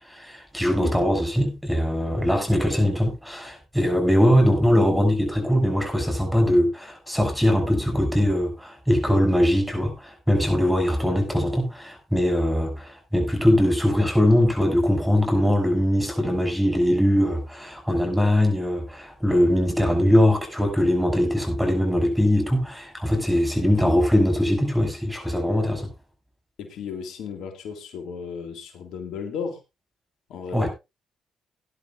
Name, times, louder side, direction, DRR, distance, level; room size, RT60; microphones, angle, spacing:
voice 1, 0.0-25.9 30.5-30.7, equal, ahead, 6.6 m, -21 dB
voice 2, 23.6-24.0 26.6-29.6 30.3-30.7, left 6 dB, 70° left, 2.0 m, -34 dB
19.0 x 10.5 x 2.5 m
hypercardioid pair, 50°, 0 cm